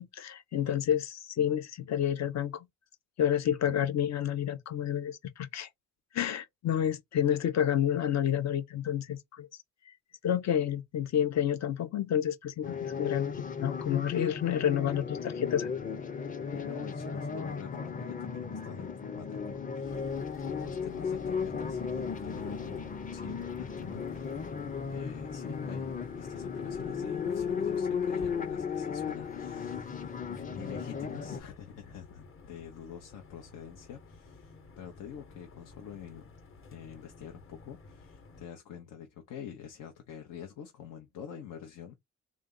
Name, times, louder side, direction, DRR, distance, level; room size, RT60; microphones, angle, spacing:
voice 1, 0.0-2.7 3.2-5.7 6.1-9.5 10.2-15.7, left 9 dB, 60° left, 0.8 m, -29 dB
sound 1, 12.6-31.4, left 6 dB, 25° left, 0.7 m, -35 dB
voice 2, 16.5-20.2 20.4-24.5 24.9-30.2 30.5-36.3 36.7-41.9, left 8 dB, 85° left, 0.9 m, -46 dB
sound 2, 19.8-38.5, left 3 dB, 45° left, 1.2 m, -52 dB
3.6 x 2.6 x 3.8 m
cardioid pair, 90°, 30 cm